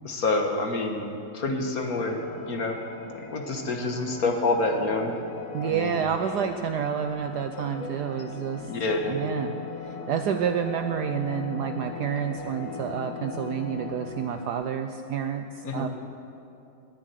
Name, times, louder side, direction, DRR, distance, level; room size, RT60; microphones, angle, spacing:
voice 1, 0.0-1.1 1.3-2.2 2.5-2.8 3.1-5.2 5.6-6.0 7.6-9.2 15.6-15.9, left 2 dB, 50° left, 3 dB, 1.7 m, -28 dB
sound 1, 1.8-14.5, left 5 dB, 65° left, 1.6 m, -40 dB
voice 2, 5.5-8.7 9.1-9.5 9.8-15.9, right 8 dB, 70° right, 7 dB, 1.0 m, -29 dB
20.0 x 7.4 x 9.3 m, 2.7 s
omnidirectional pair, 2.2 m